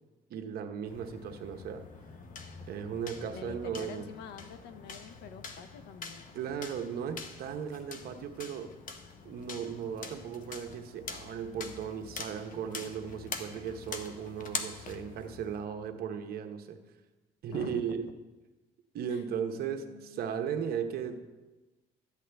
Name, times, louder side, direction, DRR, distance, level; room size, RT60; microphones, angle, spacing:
voice 1, 0.3-1.9 2.7-4.1 6.3-8.7 9.2-16.8 17.4-18.0 18.9-21.2, right 7 dB, 65° right, 6 dB, 1.0 m, -36 dB
sound 1, 0.9-15.6, left 5 dB, 55° left, 1.0 m, -44 dB
voice 2, 3.3-6.3 17.5-18.1 19.1-19.2 19.8-20.2, left 6 dB, 80° left, 10 dB, 0.8 m, -46 dB
13.0 x 8.2 x 3.4 m, 1.1 s
cardioid pair, 110°, 17 cm